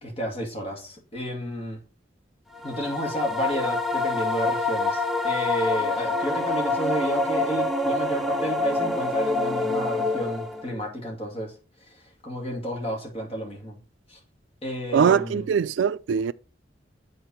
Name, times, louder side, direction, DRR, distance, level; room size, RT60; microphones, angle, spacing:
voice 1, 0.0-1.8 2.6-11.6 11.8-13.8 14.1-14.2 14.6-15.5, equal, 30° left, 2.4 m, -31 dB
sound 1, 2.6-10.7, left 2 dB, ahead, 0.5 m, -26 dB
voice 2, 14.9-16.3, right 7 dB, 80° right, 0.3 m, -22 dB
8.5 x 4.0 x 4.3 m
head